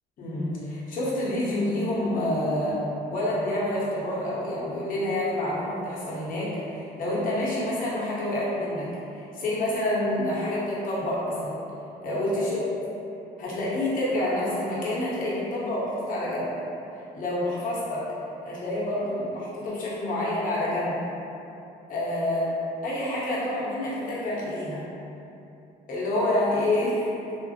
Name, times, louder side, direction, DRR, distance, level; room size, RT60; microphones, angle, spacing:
voice 1, 0.2-2.8 3.1-8.9 9.1-11.6 12.0-12.6 13.4-16.5 17.1-18.1 18.4-21.0 21.9-22.5 22.8-24.8 25.9-27.1, left 1 dB, 55° left, -7 dB, 1.0 m, -28 dB
3.6 x 2.0 x 2.8 m, 2.9 s
cardioid pair, 110°, 17 cm